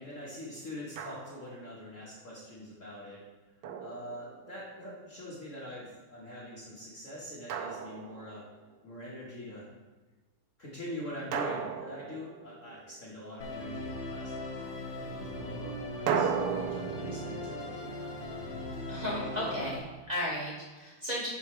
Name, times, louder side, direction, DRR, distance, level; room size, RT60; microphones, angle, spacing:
voice 1, 0.0-3.2 3.8-8.4 8.8-9.7 10.6-16.3 16.7-17.8 18.7-18.9, left 1 dB, 40° left, -6 dB, 1.8 m, -44 dB
Drum, 1.0-1.6 3.6-4.7 7.5-8.7 11.3-13.0 16.1-19.0, right 7 dB, 70° right, 1.1 m, -36 dB
Musical instrument, 13.4-19.8, left 1 dB, 60° left, 1.9 m, -39 dB
voice 2, 18.9-21.3, equal, 20° right, -7 dB, 1.9 m, -34 dB
11.0 x 5.7 x 3.3 m, 1.2 s
omnidirectional pair, 2.3 m